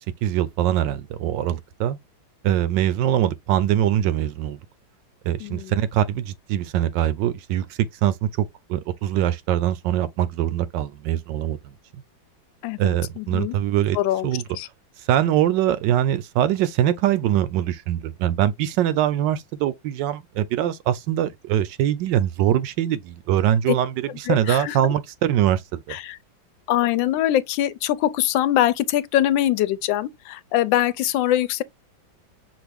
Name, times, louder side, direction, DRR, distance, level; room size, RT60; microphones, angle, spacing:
voice 1, 0.2-2.0 2.4-4.6 5.2-11.6 12.8-14.0 14.2-14.4 15.1-26.0, right 11 dB, 75° right, 1.2 m, -23 dB
voice 2, 5.4-5.7 12.6-13.6 13.9-14.3 14.5-14.7 23.7-23.8 24.2-24.8 25.9-26.2 26.7-31.6, left 13 dB, 75° left, 1.2 m, -23 dB
6.0 x 2.5 x 3.4 m
omnidirectional pair, 2.2 m